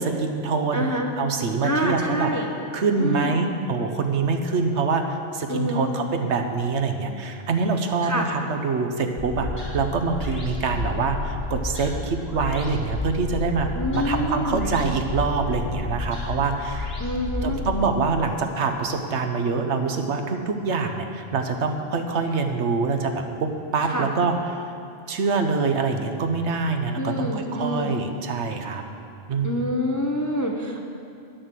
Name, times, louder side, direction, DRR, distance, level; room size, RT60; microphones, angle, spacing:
voice 1, 0.0-2.3 2.7-16.9 17.4-24.6 25.1-28.8 29.3-29.7, right 4 dB, 65° right, 5 dB, 1.0 m, -25 dB
voice 2, 0.7-1.1 1.6-2.5 3.0-3.4 5.5-5.9 8.0-8.3 13.7-14.7 17.0-17.6 23.9-24.1 27.0-27.9 29.4-30.8, equal, 20° left, 1 dB, 0.6 m, -26 dB
sound 1, 9.2-17.9, left 2 dB, 50° left, 3.5 m, -31 dB
10.5 x 6.5 x 7.6 m, 2.5 s
omnidirectional pair, 1.3 m